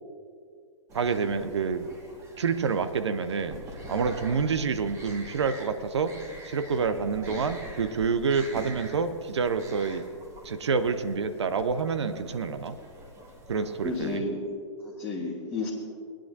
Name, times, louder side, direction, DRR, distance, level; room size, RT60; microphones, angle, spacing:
sound 1, 0.9-14.2, equal, 20° right, 1.4 m, -44 dB
voice 1, 0.9-1.9 2.4-3.6 3.9-6.2 6.4-10.1 10.4-12.7 13.5-14.2, right 5 dB, 60° right, 10 dB, 0.6 m, -28 dB
voice 2, 13.8-14.4 14.8-15.7, left 3 dB, 15° left, -5 dB, 1.3 m, -31 dB
18.5 x 10.0 x 2.6 m, 2.2 s
figure-of-eight pair, 115°, 16 cm